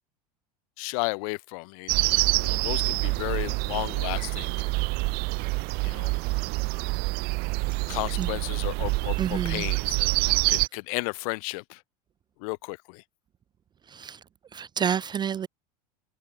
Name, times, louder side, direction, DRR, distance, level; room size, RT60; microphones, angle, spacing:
voice 1, 0.8-2.0 2.4-4.5 5.8-6.1 7.9-11.8 12.4-13.0, left 30 dB, 60° left, 2.2 m, -33 dB
sound 1, 1.9-10.7, right 26 dB, 50° right, 1.2 m, -26 dB
voice 2, 9.2-9.7 13.9-14.2 14.5-15.5, right 8 dB, 20° right, 0.4 m, -29 dB
hypercardioid pair, 85°, 20 cm